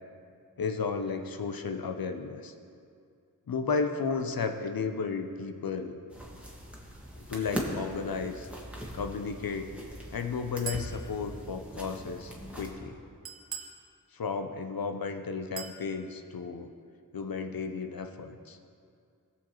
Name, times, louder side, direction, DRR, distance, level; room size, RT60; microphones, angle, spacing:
voice 1, 0.6-2.5 3.5-5.9 7.2-8.5 8.9-9.7 10.1-13.0 14.1-16.7 17.1-18.6, left 5 dB, 75° left, 7 dB, 0.7 m, -33 dB
sound 1, 6.1-12.7, equal, 5° right, 1.8 m, -41 dB
Chink clink, 10.7-11.0 13.2-13.8 15.6-15.8, right 6 dB, 80° right, 1.0 m, -39 dB
16.5 x 7.2 x 3.1 m, 2.3 s
wide cardioid pair, 55°, 35 cm